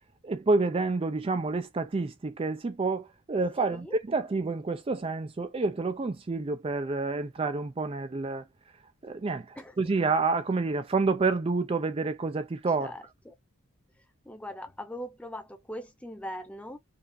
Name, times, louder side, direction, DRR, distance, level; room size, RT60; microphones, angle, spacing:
voice 1, 0.2-8.4 9.0-12.9, right 3 dB, 25° right, 0.4 m, -28 dB
voice 2, 3.6-3.9 9.6-9.8 12.8-13.3 14.2-16.8, equal, 5° left, 0.7 m, -40 dB
5.2 x 2.5 x 2.6 m
head